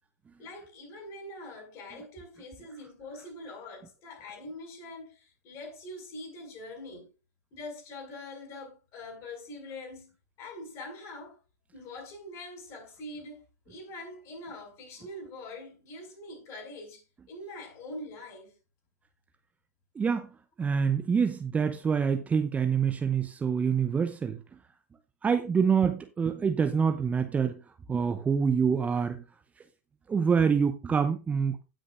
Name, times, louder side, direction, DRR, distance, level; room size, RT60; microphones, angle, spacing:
voice 1, 0.4-7.1 7.5-10.1 10.4-11.4 11.7-18.5, left 2 dB, 40° left, 6.0 m, -44 dB
voice 2, 19.9-20.3 20.6-24.4 25.2-27.6 27.9-29.2 30.1-31.6, right 6 dB, 15° right, 0.7 m, -26 dB
17.0 x 6.3 x 2.5 m
figure-of-eight pair, 95°, 9 cm